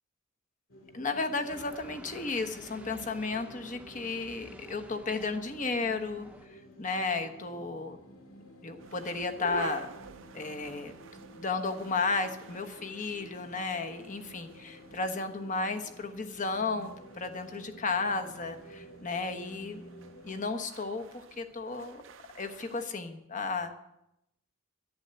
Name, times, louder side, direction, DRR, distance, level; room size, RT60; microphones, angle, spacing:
sound 1, 0.7-20.4, right 1 dB, 75° left, 2.4 m, -52 dB
voice 1, 0.9-6.3 6.8-8.0 8.6-9.9 10.3-19.8 20.2-22.0 22.3-23.8, left 3 dB, 40° left, 6 dB, 1.2 m, -34 dB
sound 2, 1.5-6.5, right 1 dB, 5° right, 0.8 m, -52 dB
sound 3, 8.8-22.9, right 5 dB, 65° right, 0.6 m, -49 dB
11.0 x 11.0 x 8.0 m, 0.84 s
head